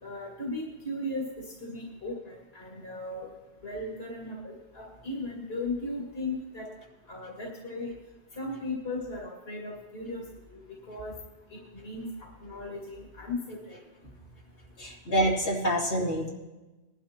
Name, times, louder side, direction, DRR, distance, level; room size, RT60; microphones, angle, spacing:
voice 1, 0.0-3.3 3.6-6.7 7.1-7.9 8.4-10.2 10.5-10.6 10.9-11.1 11.7-12.1 12.4-13.7, left 2 dB, 65° left, -2 dB, 2.5 m, -36 dB
voice 2, 14.8-16.3, right 1 dB, 85° left, -5 dB, 3.1 m, -27 dB
21.0 x 11.5 x 2.9 m, 1.1 s
omnidirectional pair, 1.1 m